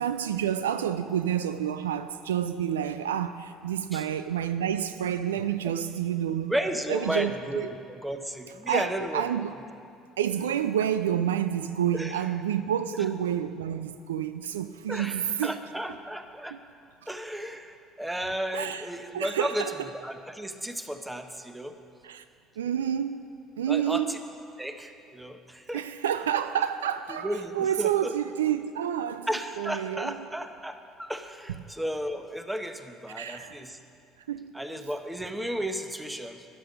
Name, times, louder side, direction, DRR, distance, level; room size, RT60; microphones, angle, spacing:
voice 1, 0.0-6.5 6.9-7.7 8.7-9.5 10.2-15.5 16.5-16.6 18.5-18.9 19.1-19.7 22.0-22.2 22.6-24.1 25.7-29.3 29.6-30.2 33.1-33.6 34.3-34.5, right 9 dB, 80° right, 0.3 m, -29 dB
voice 2, 6.5-9.2 11.9-12.3 14.9-16.6 17.1-19.7 20.0-21.7 23.7-24.2 24.6-25.8 27.2-28.1 29.3-33.8 34.5-36.5, equal, 5° right, 1.1 m, -33 dB
13.0 x 10.5 x 5.2 m
figure-of-eight pair, 60°, 0 cm